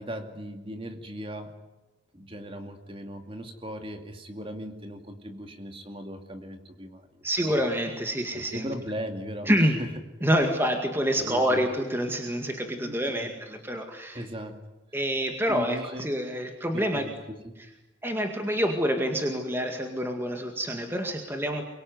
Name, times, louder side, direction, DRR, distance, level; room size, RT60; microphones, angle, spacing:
voice 1, 0.0-1.5 2.1-7.6 8.3-9.9 10.4-10.5 11.2-11.6 12.8-13.3 14.1-14.6 15.5-16.2 16.7-17.5, equal, 25° right, 6 dB, 2.4 m, -38 dB
voice 2, 7.2-8.7 9.5-9.8 10.2-14.2 14.9-17.1 18.0-21.6, equal, 10° right, 4 dB, 2.0 m, -27 dB
24.0 x 23.0 x 9.5 m, 1.0 s
head